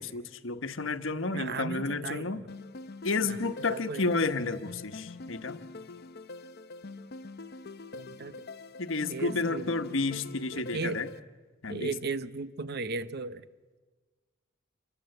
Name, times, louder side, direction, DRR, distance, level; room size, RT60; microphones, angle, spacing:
voice 1, 0.0-2.4 3.0-5.6 8.8-11.1 11.6-11.9, left 3 dB, 70° left, 9 dB, 1.3 m, -31 dB
voice 2, 1.3-2.5 3.2-3.4 3.7-4.0 7.9-8.5 9.1-9.7 10.5-11.0 11.7-13.5, right 4 dB, 50° right, 14 dB, 0.9 m, -36 dB
sound 1, 2.5-11.2, left 3 dB, 50° left, 0.8 m, -45 dB
28.0 x 23.5 x 8.0 m, 1.4 s
head